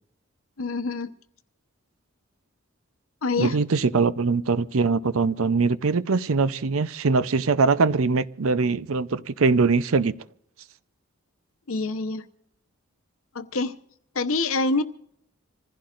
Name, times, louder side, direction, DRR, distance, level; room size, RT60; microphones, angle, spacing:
voice 1, 0.6-1.1 3.2-3.6 11.7-12.2 13.3-13.7 14.1-14.8, left 3 dB, 70° left, 0.9 m, -26 dB
voice 2, 3.4-10.1, right 4 dB, 70° right, 0.6 m, -22 dB
26.5 x 15.5 x 2.5 m
head